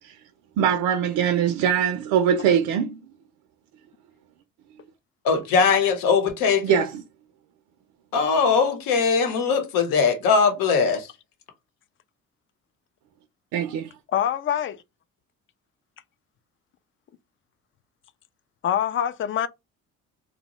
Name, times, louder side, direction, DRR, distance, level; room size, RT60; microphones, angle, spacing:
voice 1, 0.6-3.0 6.6-7.0 13.5-13.9, right 8 dB, 75° right, 0.5 m, -22 dB
voice 2, 5.2-6.8 8.1-11.1, left 5 dB, 80° left, 0.9 m, -21 dB
voice 3, 14.1-14.8 18.6-19.5, left 10 dB, 40° left, 0.4 m, -24 dB
2.8 x 2.1 x 2.9 m
supercardioid pair, 80°, 33 cm